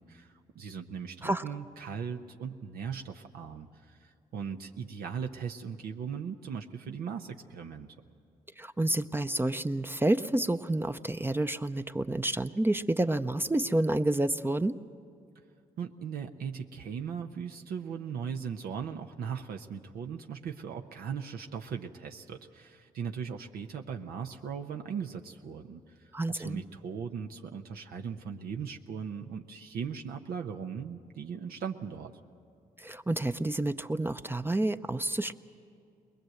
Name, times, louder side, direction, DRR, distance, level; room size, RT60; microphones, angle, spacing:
voice 1, 0.0-7.9 15.8-32.1, right 7 dB, 75° right, 4 dB, 0.8 m, -38 dB
voice 2, 8.6-14.8 26.1-26.6 32.8-35.3, right 1 dB, 15° right, 9 dB, 0.6 m, -29 dB
21.5 x 20.5 x 7.8 m, 2.4 s
supercardioid pair, 55°, 16 cm